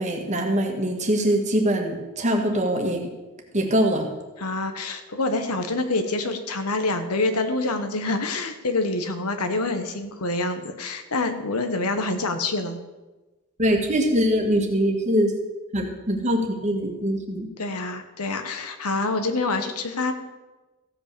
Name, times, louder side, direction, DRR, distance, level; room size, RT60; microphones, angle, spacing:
voice 1, 0.0-3.1 3.5-4.1 13.6-15.3 15.7-17.5, equal, 30° right, 3 dB, 1.6 m, -23 dB
voice 2, 4.4-12.8 17.6-20.1, left 2 dB, 90° left, 8 dB, 1.2 m, -26 dB
15.0 x 5.4 x 6.8 m, 1.1 s
head